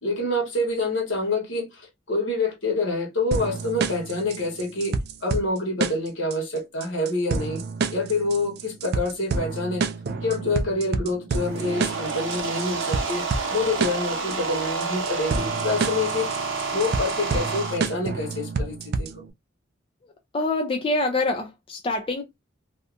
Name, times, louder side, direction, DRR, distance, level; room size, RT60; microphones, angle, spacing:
voice 1, 0.0-7.6 7.9-9.9 10.2-13.2 13.5-16.3 16.7-19.2, left 2 dB, 75° left, 1.3 m, -27 dB
sound 1, 3.3-19.3, right 4 dB, 55° right, 0.3 m, -29 dB
sound 2, 11.3-17.8, right 4 dB, 75° right, 0.7 m, -29 dB
voice 2, 20.0-22.2, left 2 dB, 25° left, 0.3 m, -26 dB
2.7 x 2.2 x 2.5 m
head